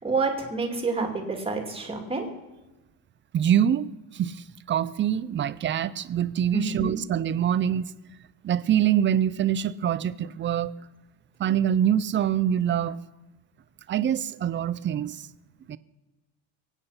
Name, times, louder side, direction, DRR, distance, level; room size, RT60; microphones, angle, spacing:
voice 1, 0.0-2.3 6.5-6.9, right 3 dB, 15° right, 2.5 m, -28 dB
voice 2, 3.3-7.9 8.4-10.7 11.4-13.0 13.9-15.3 15.7-15.8, right 10 dB, 30° right, 0.5 m, -25 dB
23.0 x 9.1 x 5.7 m
cardioid pair, 150°, 38 cm